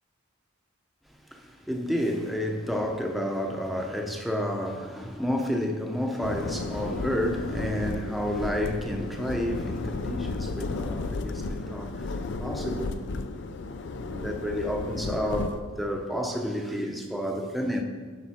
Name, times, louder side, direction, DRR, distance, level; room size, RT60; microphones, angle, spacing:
voice 1, 1.3-13.1 14.0-17.8, equal, ahead, 0.7 m, -30 dB
sound 1, 6.2-15.6, left 3 dB, 60° left, 0.5 m, -33 dB
11.5 x 5.5 x 4.3 m
head